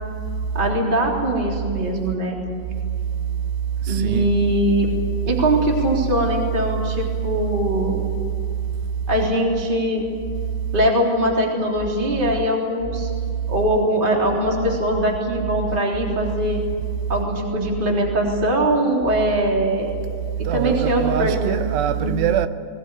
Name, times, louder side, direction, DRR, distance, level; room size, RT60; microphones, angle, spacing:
voice 1, 0.5-2.4 3.9-4.9 5.2-8.0 9.1-10.1 10.7-13.1 13.5-16.6 17.1-19.9 20.5-21.5 22.0-22.1, right 1 dB, 15° right, 3.1 m, -21 dB
voice 2, 3.8-4.3 20.4-22.5, right 10 dB, 80° right, 2.9 m, -22 dB
21.0 x 20.0 x 9.9 m
omnidirectional pair, 5.0 m